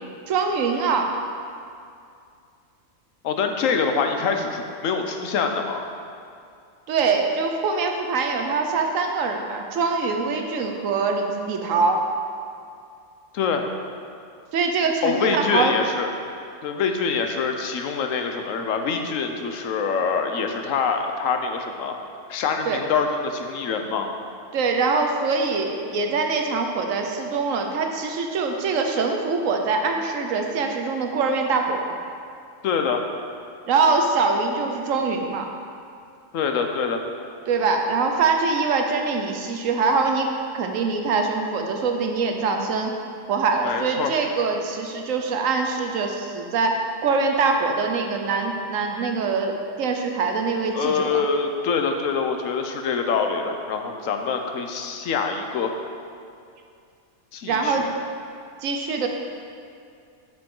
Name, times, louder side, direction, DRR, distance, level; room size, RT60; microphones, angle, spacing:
voice 1, 0.3-1.1 6.9-12.0 14.5-15.7 22.6-22.8 24.5-32.0 33.7-35.5 37.5-40.3 40.5-42.9 43.3-51.2 57.5-57.8 58.6-59.1, right 4 dB, 80° right, 4 dB, 1.1 m, -23 dB
voice 2, 3.2-5.8 13.3-13.7 15.0-16.1 16.6-22.0 22.3-24.1 32.6-33.0 36.3-37.0 43.6-44.1 50.7-55.7 57.3-57.9, left 5 dB, 80° left, 5 dB, 1.1 m, -25 dB
7.8 x 7.2 x 3.8 m, 2.4 s
omnidirectional pair, 1.3 m